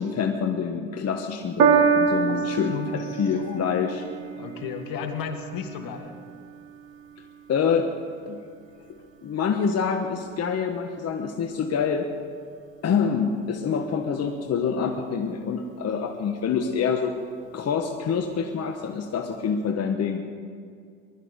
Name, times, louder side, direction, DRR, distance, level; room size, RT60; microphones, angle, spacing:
voice 1, 0.0-4.0 7.5-7.9 8.3-8.4 9.2-12.1 12.8-17.1 17.5-20.2, left 6 dB, 40° left, 4 dB, 1.3 m, -26 dB
Piano, 1.6-8.2 9.0-9.1, right 6 dB, 90° right, 1.3 m, -27 dB
voice 2, 2.7-3.1 4.4-6.1, left 7 dB, 60° left, 6 dB, 2.0 m, -33 dB
20.0 x 12.5 x 5.2 m, 2.3 s
hypercardioid pair, 75°, 39 cm